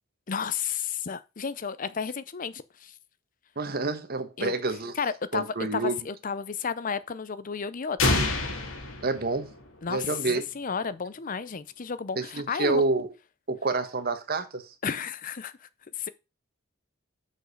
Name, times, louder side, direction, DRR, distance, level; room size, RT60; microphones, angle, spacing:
voice 1, 0.3-2.9 4.4-4.5 5.0-8.2 9.8-10.1 10.5-12.8 14.8-15.5 16.0-16.1, left 6 dB, 40° left, 0.5 m, -32 dB
voice 2, 3.6-5.0 5.3-6.0 9.0-9.5 9.9-10.4 12.1-13.1 13.5-14.7, right 3 dB, 50° right, 1.2 m, -28 dB
sound 1, 8.0-9.9, left 2 dB, 85° left, 2.0 m, -27 dB
6.5 x 5.3 x 6.4 m
head